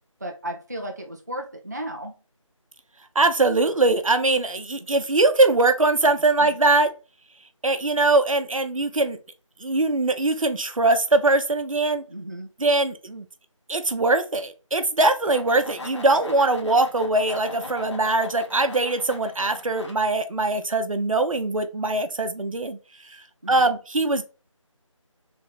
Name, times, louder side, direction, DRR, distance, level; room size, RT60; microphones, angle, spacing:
voice 1, 0.2-2.2 6.4-6.5 12.1-12.5 23.4-23.7, right 1 dB, 35° right, 0.4 m, -34 dB
voice 2, 3.1-6.9 7.6-9.2 9.6-12.0 12.6-13.3 13.7-22.8 23.0-23.2 23.5-24.2, right 2 dB, 80° right, 0.7 m, -22 dB
sound 1, 15.0-19.9, left 2 dB, 60° left, 1.5 m, -39 dB
3.3 x 2.7 x 4.2 m
figure-of-eight pair, 165°, 17 cm